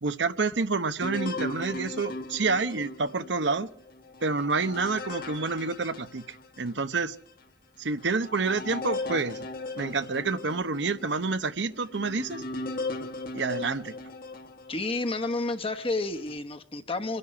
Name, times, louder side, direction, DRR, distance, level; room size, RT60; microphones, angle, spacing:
voice 1, 0.0-3.7 4.2-7.2 7.8-9.5 9.7-12.4 13.3-13.9, right 4 dB, 75° right, 0.9 m, -28 dB
sound 1, 1.0-6.8 7.3-7.4 8.0-15.2 15.8-16.4, left 2 dB, 55° left, 1.7 m, -38 dB
voice 2, 14.7-17.2, left 2 dB, 30° left, 1.2 m, -30 dB
25.5 x 11.0 x 9.7 m
head